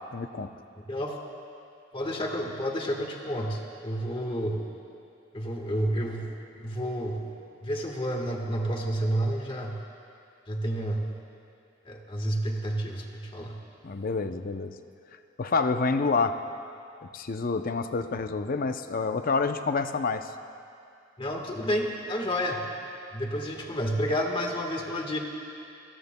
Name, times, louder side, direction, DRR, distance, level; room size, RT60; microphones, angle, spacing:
voice 1, 0.1-0.5 13.8-14.7 15.4-16.4 17.1-20.3, left 4 dB, 45° left, 8 dB, 0.6 m, -28 dB
voice 2, 1.9-4.6 5.3-6.3 6.6-7.3 7.6-9.8 10.5-11.2 11.8-13.6 21.2-22.6 23.1-25.2, equal, 30° left, 1 dB, 1.4 m, -30 dB
26.0 x 17.5 x 2.2 m, 2.5 s
head